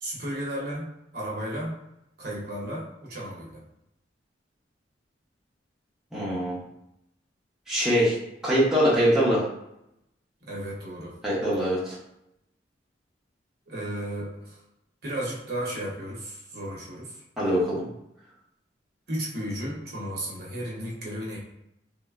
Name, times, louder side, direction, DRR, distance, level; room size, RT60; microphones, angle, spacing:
voice 1, 0.0-1.8 2.2-3.6 10.4-11.2 13.7-14.6 15.0-17.2 19.1-21.4, right 1 dB, 55° right, -4 dB, 0.8 m, -34 dB
voice 2, 6.1-6.6 7.7-8.2 8.4-9.4 11.2-12.0 17.4-17.8, equal, 5° right, -8 dB, 0.8 m, -23 dB
3.1 x 2.1 x 2.3 m, 0.83 s
head